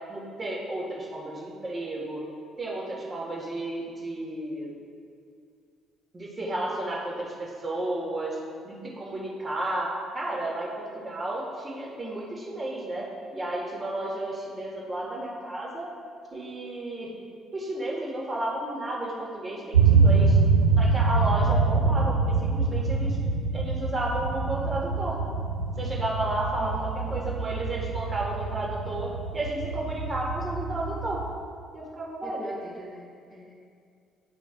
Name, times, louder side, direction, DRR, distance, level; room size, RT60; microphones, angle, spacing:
voice 1, 0.1-2.2 2.6-4.7 6.1-8.4 8.6-13.0 13.3-15.9 16.3-17.1 17.5-20.4 20.8-23.2 23.5-25.2 25.8-31.2 31.7-32.5, right 1 dB, 25° right, -4 dB, 1.7 m, -32 dB
sound 1, 19.7-31.3, right 4 dB, 80° right, 0.4 m, -25 dB
voice 2, 26.6-27.4 32.2-33.5, left 1 dB, 15° left, -4 dB, 0.9 m, -43 dB
11.0 x 5.0 x 2.6 m, 2.3 s
figure-of-eight pair, 50°, 0 cm